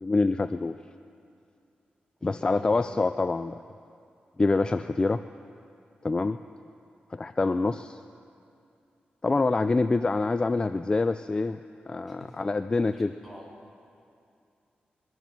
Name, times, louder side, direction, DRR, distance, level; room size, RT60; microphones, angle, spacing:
voice 1, 0.0-0.8 2.2-3.6 4.4-5.2 6.0-6.4 7.1-8.0 9.2-11.6 11.9-13.1, left 3 dB, 25° left, 11 dB, 0.3 m, -26 dB
voice 2, 2.2-2.8 12.1-12.4 12.9-13.5, left 1 dB, ahead, -4 dB, 3.4 m, -47 dB
22.5 x 7.8 x 6.7 m, 2.5 s
cardioid pair, 90°, 3 cm